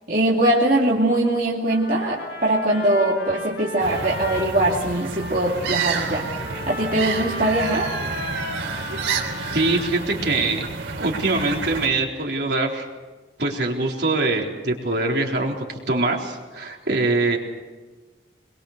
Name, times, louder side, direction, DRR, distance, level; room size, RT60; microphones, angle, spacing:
voice 1, 0.1-6.3 6.7-7.9, right 1 dB, 45° right, -4 dB, 2.5 m, -21 dB
Trumpet, 1.7-10.1, left 1 dB, 60° left, 6.0 m, -36 dB
sound 1, 3.8-11.9, right 4 dB, 90° right, 3.6 m, -30 dB
voice 2, 9.5-10.6 11.0-12.9 13.4-17.4, right 2 dB, 60° right, -1 dB, 4.0 m, -23 dB
24.5 x 22.5 x 6.7 m, 1.3 s
head